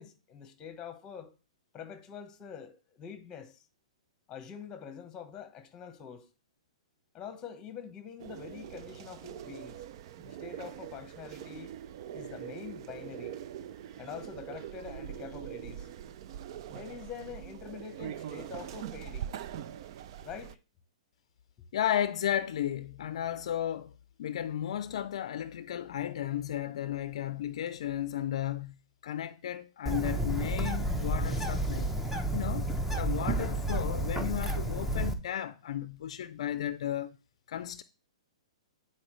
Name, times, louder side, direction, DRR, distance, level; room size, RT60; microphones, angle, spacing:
voice 1, 0.0-1.3 1.7-3.6 4.3-6.3 7.1-9.8 10.2-11.7 12.1-13.4 14.0-15.9 16.7-19.3 20.2-20.6, left 7 dB, 20° left, 1.1 m, -45 dB
sound 1, 8.2-20.5, right 10 dB, 50° right, 0.4 m, -43 dB
voice 2, 21.7-23.9 24.2-28.8 29.0-31.9 32.3-37.2 37.5-37.8, left 11 dB, 65° left, 0.4 m, -34 dB
Bird, 29.9-35.1, right 1 dB, 5° right, 0.8 m, -31 dB
9.7 x 4.3 x 3.2 m
hypercardioid pair, 135°, 3 cm